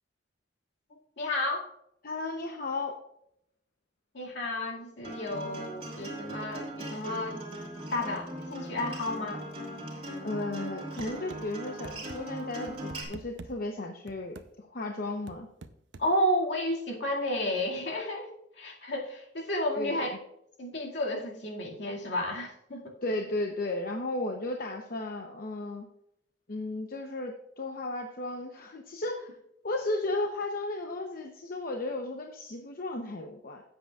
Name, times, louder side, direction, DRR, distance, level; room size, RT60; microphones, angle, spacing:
voice 1, 1.2-1.7 4.1-7.4 7.9-9.4 16.0-18.3 18.6-20.2 20.6-22.9, left 1 dB, 75° left, -1 dB, 2.2 m, -32 dB
voice 2, 2.0-3.0 10.2-15.5 19.8-20.0 23.0-25.9 26.5-29.3 29.6-33.6, left 2 dB, 55° left, 3 dB, 0.8 m, -34 dB
Acoustic guitar, 5.0-13.0, right 1 dB, 35° right, 2.9 m, -39 dB
sound 1, 11.0-11.4 11.8-12.2 12.7-13.5 14.1-14.5 15.3-16.1, right 3 dB, 90° right, 0.7 m, -45 dB
16.0 x 7.9 x 2.4 m, 0.77 s
head